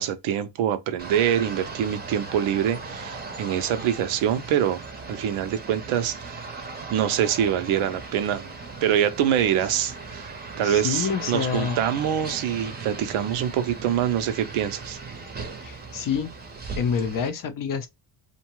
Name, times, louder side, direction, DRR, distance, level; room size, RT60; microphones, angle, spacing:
voice 1, 0.0-4.8 5.1-6.5 6.9-8.5 8.8-15.0, right 9 dB, 80° right, 0.6 m, -25 dB
sound 1, 1.0-17.3, right 4 dB, 20° right, 0.7 m, -38 dB
voice 2, 10.6-11.8 15.6-16.3 16.8-17.9, left 6 dB, 45° left, 0.6 m, -27 dB
2.6 x 2.2 x 3.0 m
cardioid pair, 95°, 48 cm